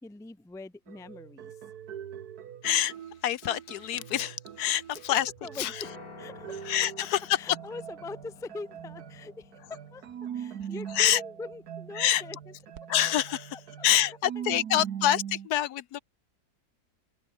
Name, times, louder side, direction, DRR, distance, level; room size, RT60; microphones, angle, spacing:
voice 1, 0.0-1.6 4.7-4.8 5.4-5.9 6.2-6.6 7.4-10.0 10.3-12.5 13.5-14.4, left 3 dB, 5° left, 0.3 m, -43 dB
sound 1, 0.9-7.1 7.5-15.5, right 9 dB, 80° right, 1.6 m, -42 dB
voice 2, 2.6-2.9 3.2-5.3 5.6-5.8 6.6-7.4 10.9-11.2 12.0-12.2 12.9-13.6 13.8-16.0, left 12 dB, 85° left, 1.3 m, -26 dB
Piano, 5.8-14.1, left 4 dB, 70° left, 3.5 m, -53 dB
open air
omnidirectional pair, 1.6 m